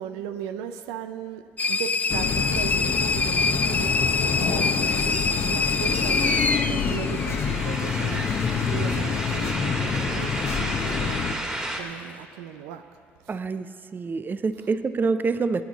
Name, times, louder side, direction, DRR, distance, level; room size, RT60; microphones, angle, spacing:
voice 1, 0.0-8.3 8.7-12.8, right 9 dB, 80° right, 9 dB, 0.5 m, -37 dB
sound 1, 1.6-8.0, left 4 dB, 25° left, 0.5 m, -25 dB
sound 2, 2.1-11.4, left 6 dB, 50° left, 0.8 m, -27 dB
sound 3, 2.9-4.0 4.3-11.8, right 1 dB, 15° right, 2.2 m, -33 dB
voice 2, 13.3-15.6, right 4 dB, 35° right, 12 dB, 0.6 m, -26 dB
17.0 x 8.6 x 4.1 m, 2.3 s
hypercardioid pair, 60°, 6 cm